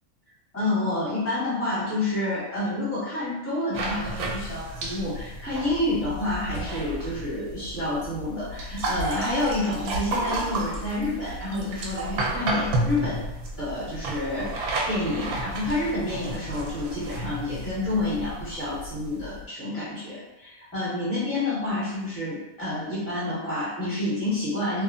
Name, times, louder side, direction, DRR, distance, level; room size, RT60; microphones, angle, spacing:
voice 1, 0.5-13.3 13.6-24.8, left 2 dB, 10° left, -9 dB, 1.0 m, -29 dB
sound 1, 3.7-19.4, right 2 dB, 85° right, 1.1 m, -32 dB
2.9 x 2.4 x 2.5 m, 0.96 s
omnidirectional pair, 1.5 m